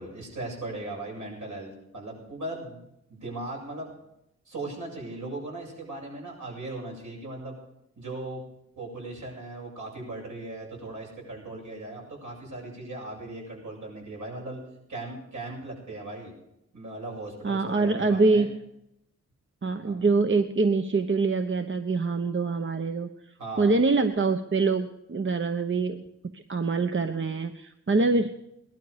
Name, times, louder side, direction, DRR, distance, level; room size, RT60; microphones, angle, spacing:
voice 1, 0.0-3.9 4.4-7.6 8.0-8.4 8.8-14.6 14.9-16.3 16.7-18.5 19.8-19.9 23.4-23.7, right 2 dB, 75° right, -2 dB, 8.0 m, -38 dB
voice 2, 17.4-18.6 19.6-23.1 23.6-26.0 26.3-28.3, right 3 dB, 40° right, 7 dB, 1.1 m, -24 dB
19.0 x 12.0 x 5.2 m, 0.81 s
cardioid pair, 55°, 30 cm